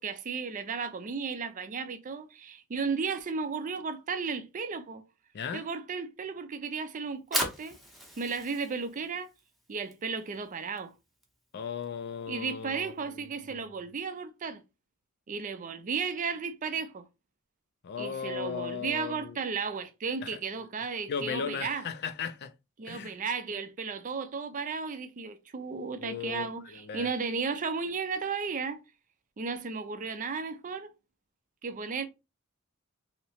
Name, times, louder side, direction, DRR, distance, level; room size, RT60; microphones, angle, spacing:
voice 1, 0.0-5.0 5.5-7.8 8.2-9.3 9.7-10.9 12.3-14.6 15.3-17.0 18.0-21.9 22.8-28.8 29.4-30.9 31.6-32.0, right 5 dB, 40° right, 0.4 m, -34 dB
Fire, 7.0-13.2, equal, ahead, 0.7 m, -39 dB
voice 2, 11.5-13.3 13.5-13.6 17.8-19.4 20.2-20.3 21.1-22.5 22.9-23.1 26.0-27.1, left 6 dB, 50° left, 0.4 m, -36 dB
3.1 x 2.8 x 2.7 m
head